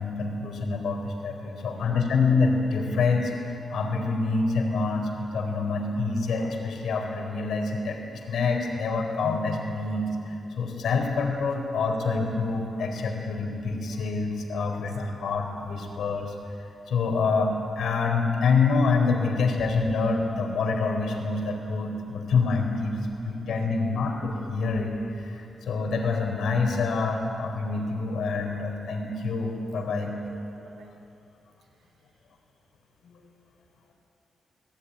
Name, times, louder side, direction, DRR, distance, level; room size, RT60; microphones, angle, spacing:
voice 1, 0.0-16.3 16.9-23.0 23.2-30.1 33.1-33.2, left 4 dB, 85° left, 3 dB, 4.0 m, -26 dB
voice 2, 1.4-2.0 14.7-14.8 23.5-23.7 29.7-31.0 31.8-31.9, right 3 dB, 80° right, 2 dB, 4.3 m, -50 dB
28.0 x 19.0 x 9.6 m, 2.8 s
wide cardioid pair, 135°, 0 cm